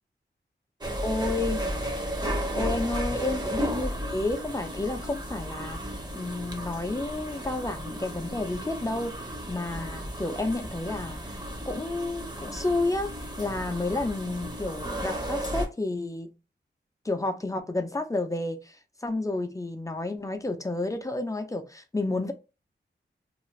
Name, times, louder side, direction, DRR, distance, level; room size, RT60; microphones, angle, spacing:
sound 1, 0.8-15.7, equal, 20° right, 0.6 m, -34 dB
voice 1, 1.0-1.6 2.5-11.4 11.6-16.3 17.0-22.3, left 2 dB, 15° left, 0.4 m, -31 dB
2.4 x 2.3 x 3.1 m
wide cardioid pair, 95°, 19 cm